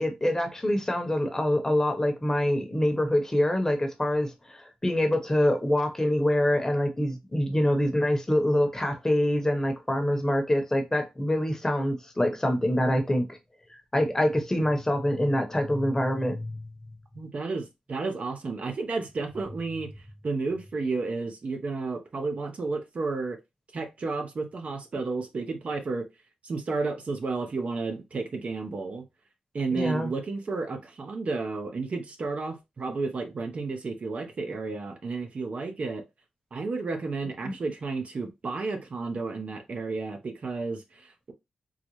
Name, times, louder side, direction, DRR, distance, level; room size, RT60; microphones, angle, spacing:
voice 1, 0.0-13.4 13.9-16.6 29.7-30.1 37.4-37.5, left 1 dB, 20° left, 0.9 m, -25 dB
voice 2, 17.1-19.9 20.2-23.4 23.7-26.1 26.4-29.0 29.5-36.0 36.5-41.3, right 3 dB, 55° right, 0.7 m, -32 dB
3.9 x 2.0 x 3.1 m
cardioid pair, 65°, 3 cm